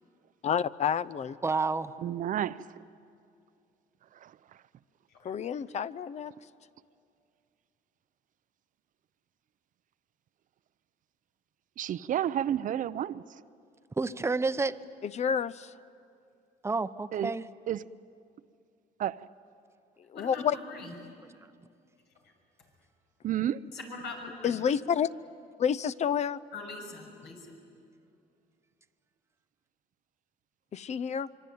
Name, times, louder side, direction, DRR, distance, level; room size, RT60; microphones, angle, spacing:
voice 1, 0.4-1.4 5.2-6.3 15.0-15.7 20.1-20.6 24.4-25.1 25.6-26.4 30.7-31.3, left 8 dB, 40° left, 0.6 m, -29 dB
voice 2, 1.4-1.9 14.0-14.8 16.6-17.5, right 3 dB, 15° right, 0.8 m, -29 dB
voice 3, 2.0-2.8 4.1-4.4 11.8-13.4 17.1-17.3 17.7-17.9 19.0-19.3 23.2-23.6, right 10 dB, 50° right, 0.6 m, -31 dB
voice 4, 20.1-21.1 22.2-22.3 23.7-24.6 26.5-27.5, left 3 dB, 80° left, 6.6 m, -43 dB
25.0 x 24.5 x 9.4 m
cardioid pair, 110°, 17 cm